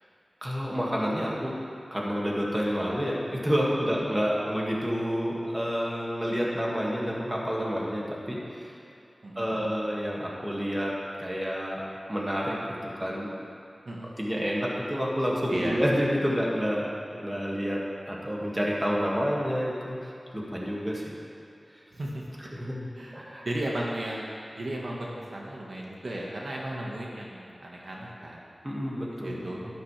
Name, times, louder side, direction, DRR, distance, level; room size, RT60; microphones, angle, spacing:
voice 1, 0.4-1.6 1.9-8.7 9.4-11.8 12.1-12.6 12.8-13.3 14.0-17.8 18.1-21.0 22.4-22.8 23.1-23.4 28.6-29.5, equal, 20° right, -4 dB, 2.0 m, -29 dB
voice 2, 9.2-9.6 13.8-14.1 15.5-15.8 21.9-22.2 23.0-23.2 23.4-24.2 24.5-28.4 29.2-29.6, right 1 dB, 65° right, -3 dB, 1.4 m, -35 dB
12.0 x 11.5 x 3.4 m, 2.6 s
wide cardioid pair, 70°, 0 cm